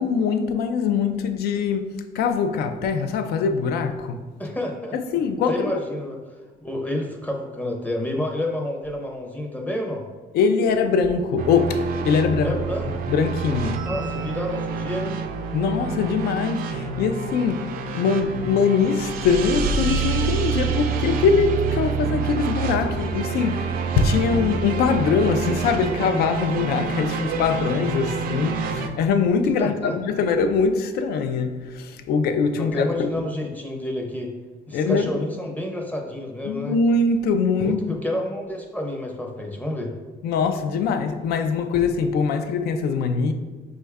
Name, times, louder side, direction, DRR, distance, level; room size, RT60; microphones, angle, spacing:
voice 1, 0.0-4.2 4.9-5.8 10.3-12.6 13.1-13.9 15.5-33.2 34.7-35.1 36.4-37.8 40.2-43.3, left 5 dB, 70° left, 0.4 m, -22 dB
voice 2, 4.4-5.2 5.5-10.0 12.4-12.9 13.9-15.2 29.6-29.9 32.6-34.3 34.7-36.8 37.6-39.9, left 1 dB, 10° left, 0.6 m, -29 dB
sound 1, 11.4-28.9, right 5 dB, 60° right, 0.4 m, -27 dB
5.2 x 2.3 x 3.4 m
cardioid pair, 110°, 17 cm